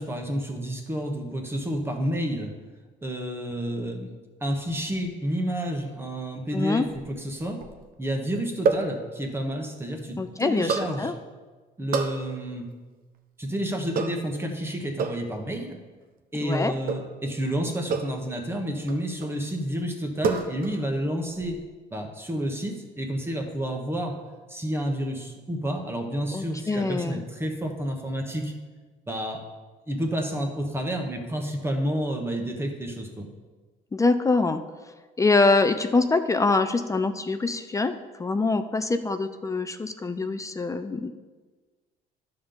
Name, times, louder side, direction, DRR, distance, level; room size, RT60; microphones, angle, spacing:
voice 1, 0.0-2.5 3.0-4.1 4.4-7.6 8.0-11.1 11.8-12.7 13.4-15.8 16.3-21.6 21.9-24.2 24.5-28.5 29.1-29.4 29.9-33.3, equal, 15° right, 3 dB, 1.3 m, -30 dB
voice 2, 6.5-6.9 10.2-11.1 16.4-16.7 26.3-27.2 33.9-34.6 35.2-37.9 38.2-41.1, left 3 dB, 20° left, 9 dB, 0.5 m, -24 dB
sound 1, 6.9-7.8 8.6-9.0 10.7-11.0 11.9-12.2 13.9-14.3 15.0-15.3 16.9-17.2 17.9-18.2 18.9-19.4 20.2-20.9 21.1-21.6, right 5 dB, 55° right, 0.9 m, -28 dB
11.0 x 3.9 x 7.0 m, 1.3 s
cardioid pair, 110°, 17 cm